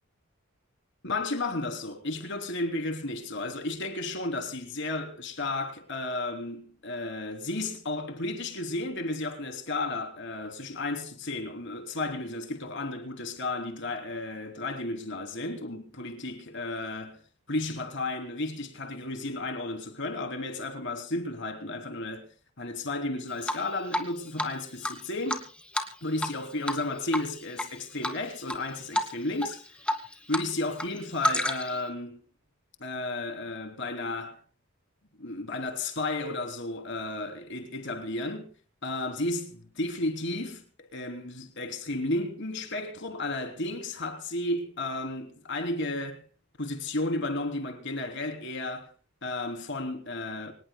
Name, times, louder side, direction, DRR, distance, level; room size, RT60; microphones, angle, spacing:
voice 1, 1.0-17.2 17.5-22.3 22.6-25.5 26.0-29.8 30.3-32.2 32.8-34.4 35.2-38.5 38.8-46.2 46.6-48.9 49.2-50.5, left 2 dB, 60° left, 3.3 m, -33 dB
Drip, 23.4-24.1 24.4-24.5 24.8-26.4 26.6-26.8 27.1-27.7 28.0-28.6 28.9-29.1 29.4-30.5 30.7-31.8, left 1 dB, 5° left, 2.0 m, -30 dB
25.0 x 19.5 x 2.2 m
head